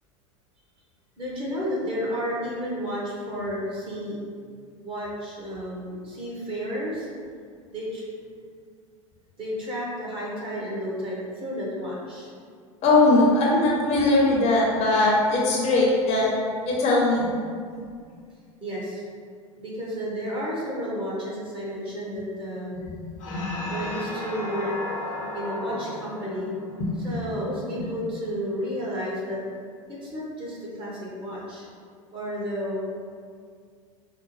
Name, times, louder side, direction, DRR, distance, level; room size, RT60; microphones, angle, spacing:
voice 1, 1.2-4.2 4.8-7.1 7.7-8.0 9.4-12.3 18.6-19.0 19.6-22.8 23.7-24.7 25.3-26.5 27.0-29.4 29.9-31.7 32.1-32.8, equal, 30° right, -5 dB, 1.2 m, -32 dB
voice 2, 12.8-16.3 16.7-17.3 23.3-23.5 26.8-26.9, left 2 dB, 40° left, -4 dB, 0.8 m, -20 dB
sound 1, 23.2-28.0, left 2 dB, 65° left, 0.8 m, -35 dB
4.7 x 2.0 x 3.2 m, 2.1 s
figure-of-eight pair, 80°, 18 cm